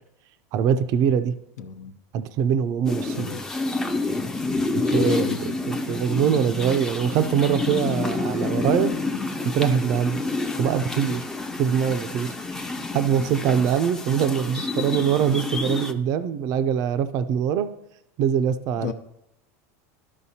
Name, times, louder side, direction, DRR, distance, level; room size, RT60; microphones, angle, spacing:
voice 1, 0.5-1.3 2.1-3.4 4.9-5.3 5.7-8.9 9.4-10.2 10.6-11.2 11.6-12.7 12.9-17.7 18.2-18.9, right 8 dB, 45° right, 11 dB, 0.5 m, -23 dB
voice 2, 1.6-1.9 3.1-3.5 4.8-5.4 18.8-18.9, left 7 dB, 85° left, 6 dB, 0.8 m, -32 dB
sound 1, 2.9-15.9, left 3 dB, 5° left, 0.5 m, -28 dB
13.0 x 5.0 x 2.8 m, 0.80 s
supercardioid pair, 140°, 9 cm